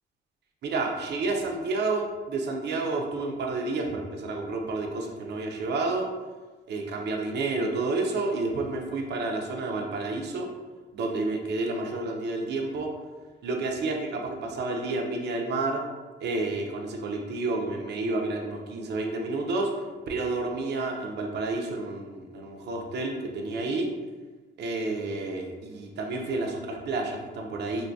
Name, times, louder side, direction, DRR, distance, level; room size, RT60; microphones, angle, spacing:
voice 1, 0.6-6.1 6.7-10.5 10.9-12.9 13.4-15.8 16.2-19.7 20.1-23.9 24.6-27.9, right 3 dB, 60° right, 1 dB, 0.5 m, -30 dB
2.7 x 2.2 x 2.6 m, 1.3 s
cardioid pair, 90°, 20 cm